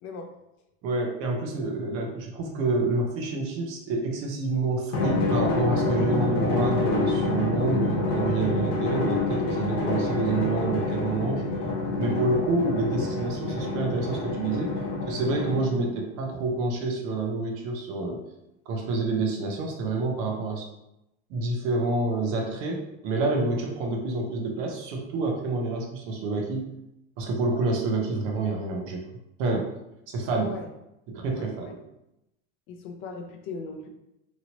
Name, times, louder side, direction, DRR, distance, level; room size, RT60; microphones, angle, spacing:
voice 1, 0.0-0.3 30.4-30.7 31.3-31.7 32.7-33.9, left 4 dB, 35° left, 3 dB, 0.4 m, -38 dB
voice 2, 0.8-11.5 12.0-14.8 15.1-18.2 18.7-20.7 21.3-26.7 27.2-29.0 29.4-29.7 30.1-30.6 31.1-31.8, right 2 dB, 40° right, 1 dB, 0.6 m, -28 dB
Drum, 4.9-15.9, left 2 dB, 65° left, 1.0 m, -27 dB
3.0 x 2.6 x 2.8 m, 0.86 s
supercardioid pair, 165°, 37 cm